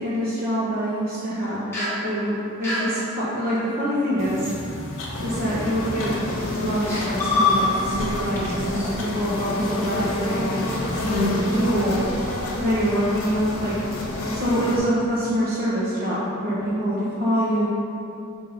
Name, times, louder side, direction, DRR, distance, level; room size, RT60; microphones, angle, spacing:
voice 1, 0.0-4.5 5.2-6.2 6.6-10.6 11.3-12.1 12.6-13.8 14.3-17.7, equal, 40° right, -8 dB, 1.1 m, -25 dB
sound 1, 1.7-2.0 2.6-2.9 4.6-4.7 5.6-5.9 6.5-6.6 6.9-8.0 8.4-8.5 8.8-8.9, left 3 dB, 10° left, 1.2 m, -24 dB
sound 2, 4.2-10.5, left 1 dB, 60° left, 1.0 m, -38 dB
sound 3, 5.1-14.8, left 1 dB, 75° left, 1.3 m, -28 dB
5.6 x 3.6 x 5.8 m, 2.7 s
head